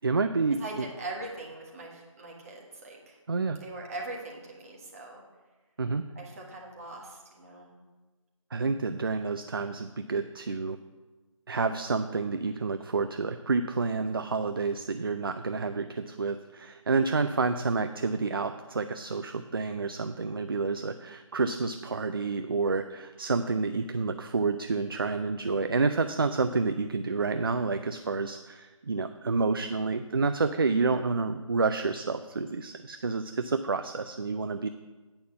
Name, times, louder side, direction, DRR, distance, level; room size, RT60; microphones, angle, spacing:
voice 1, 0.0-0.8 3.3-3.6 5.8-6.0 8.5-10.8 11.5-34.7, right 4 dB, 45° right, 9 dB, 0.4 m, -29 dB
voice 2, 0.6-3.2 3.6-5.2 6.1-7.7, right 2 dB, 25° right, -1 dB, 1.5 m, -41 dB
8.7 x 5.5 x 7.0 m, 1.2 s
figure-of-eight pair, 170°, 17 cm